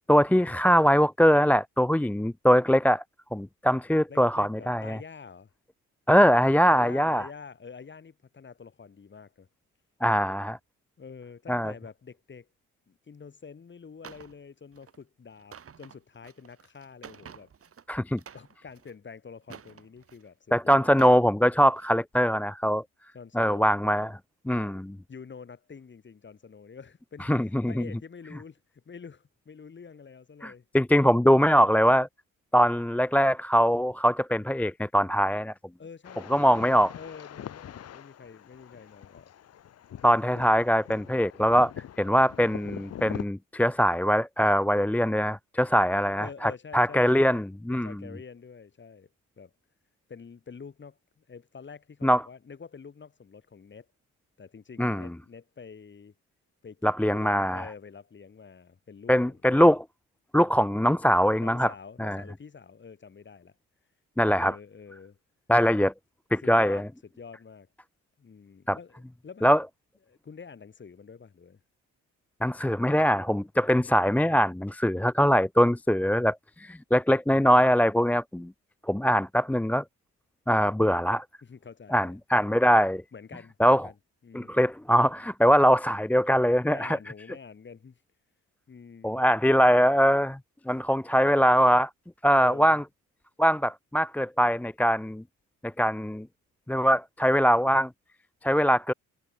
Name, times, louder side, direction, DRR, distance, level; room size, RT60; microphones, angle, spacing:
voice 1, 0.1-3.0 3.3-5.0 6.1-7.3 10.0-10.6 11.5-11.7 17.9-18.2 20.5-22.8 23.3-24.1 24.5-25.0 27.2-27.8 30.4-32.1 32.5-35.5 36.3-36.9 40.0-41.7 42.0-47.9 52.0-52.2 54.8-55.1 56.8-57.7 59.1-59.8 60.3-61.7 62.0-62.2 64.2-64.5 65.5-65.9 66.3-66.8 68.7-68.8 69.4-69.6 72.4-78.5 78.9-79.8 80.5-81.2 81.9-83.0 83.6-83.9 84.3-87.0 89.0-90.4 90.7-91.9 92.2-92.8 93.4-95.2 95.6-96.3 96.7-97.9 98.4-98.9, equal, 5° left, 0.6 m, -22 dB
voice 2, 4.1-5.5 6.7-9.5 11.0-12.5 12.9-17.5 18.3-20.9 23.1-23.8 25.1-30.7 35.8-39.3 46.1-47.4 47.7-49.1 49.4-49.5 50.1-53.9 54.4-56.1 56.6-59.4 61.4-63.6 64.3-65.2 65.6-65.8 66.4-66.8 67.2-67.7 68.2-69.5 70.1-71.6 81.4-82.2 83.1-83.9 84.2-84.6 86.6-88.0 88.7-89.2 92.3-92.8, left 5 dB, 40° left, 6.0 m, -47 dB
sound 1, 14.0-14.3 14.7-15.0 15.4-17.8 18.1-18.9 19.4-20.3 20.8-21.3 21.7-21.9, right 7 dB, 50° right, 4.9 m, -49 dB
sound 2, 36.0-43.3, left 10 dB, 55° left, 1.2 m, -43 dB
cardioid pair, 90°, 30 cm